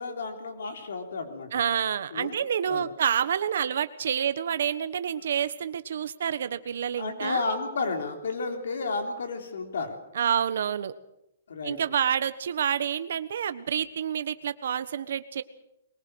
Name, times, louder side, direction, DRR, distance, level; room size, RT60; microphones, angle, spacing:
voice 1, 0.0-1.6 2.1-2.4 2.6-2.9 7.0-10.0 11.5-11.8, left 3 dB, 75° left, 4 dB, 3.5 m, -32 dB
voice 2, 1.5-7.5 10.1-10.9 11.6-15.4, right 8 dB, 55° right, 12 dB, 1.3 m, -28 dB
22.5 x 20.5 x 6.4 m, 0.84 s
hypercardioid pair, 180°, 0 cm